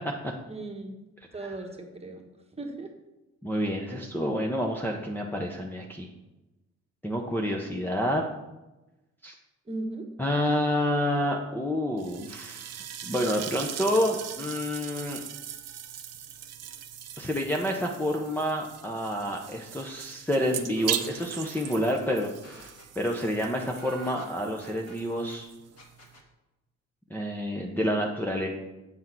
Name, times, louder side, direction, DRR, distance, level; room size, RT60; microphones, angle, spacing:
voice 1, 0.5-1.0 1.3-2.2 2.6-2.9 9.7-10.1, right 2 dB, 20° right, 2 dB, 1.2 m, -37 dB
voice 2, 3.4-6.1 7.0-8.2 9.2-9.3 10.2-15.2 17.2-22.7 23.0-25.5 27.1-28.5, equal, 5° left, -2 dB, 0.8 m, -29 dB
sound 1, 12.0-26.2, right 10 dB, 55° right, 0.7 m, -39 dB
sound 2, 20.4-20.5 20.7-25.4 25.8-26.3, right 1 dB, 55° left, 1.6 m, -50 dB
8.0 x 3.6 x 5.9 m, 1.0 s
cardioid pair, 90°, 30 cm